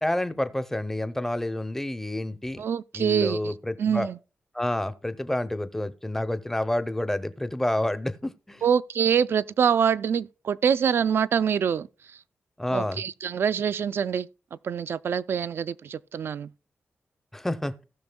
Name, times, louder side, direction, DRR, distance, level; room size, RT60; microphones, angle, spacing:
voice 1, 0.0-2.6 2.9-4.1 4.5-8.7 12.6-13.0 17.3-17.8, left 1 dB, 10° left, 0.6 m, -29 dB
voice 2, 2.6-3.5 3.8-4.2 8.6-12.2 12.7-16.5, right 7 dB, 65° right, 0.3 m, -25 dB
17.5 x 6.1 x 2.2 m
wide cardioid pair, 150°, 4 cm